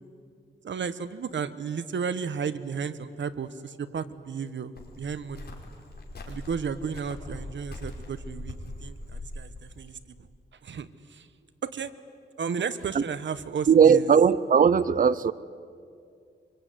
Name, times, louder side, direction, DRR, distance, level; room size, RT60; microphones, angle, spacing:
voice 1, 0.6-5.5 6.3-10.3 10.6-11.3 11.6-11.9 12.4-14.1, right 6 dB, 70° right, 12 dB, 1.3 m, -33 dB
Cricket, 4.8-9.9, left 1 dB, 55° left, 5.3 m, -41 dB
voice 2, 13.7-15.3, right 7 dB, 45° right, 16 dB, 0.7 m, -18 dB
25.0 x 25.0 x 9.5 m, 2.3 s
wide cardioid pair, 100°, 20 cm